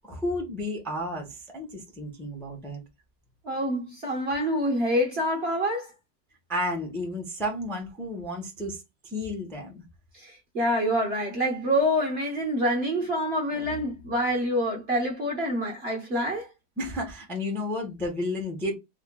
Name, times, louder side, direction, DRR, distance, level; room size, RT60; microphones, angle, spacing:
voice 1, 0.0-2.8 6.5-9.8 16.8-18.7, left 1 dB, ahead, 0.7 m, -32 dB
voice 2, 3.4-5.9 10.1-16.5, equal, 40° right, 1.1 m, -26 dB
3.6 x 2.2 x 3.7 m
omnidirectional pair, 2.0 m